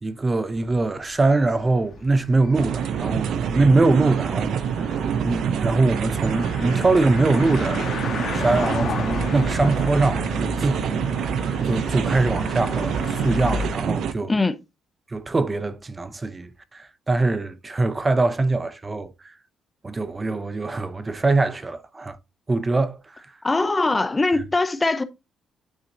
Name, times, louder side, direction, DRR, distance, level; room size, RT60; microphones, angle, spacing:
voice 1, 0.0-4.9 5.2-7.8 8.3-10.9 11.6-14.3 15.1-19.3 19.8-22.2 22.5-23.2, right 3 dB, 25° right, 0.6 m, -23 dB
sound 1, 0.5-13.7, left 5 dB, 60° left, 1.4 m, -34 dB
sound 2, 2.5-14.1, right 7 dB, 75° right, 0.6 m, -26 dB
voice 2, 23.4-25.0, left 3 dB, 20° left, 0.6 m, -21 dB
9.6 x 4.2 x 2.5 m
cardioid pair, 90°, 0 cm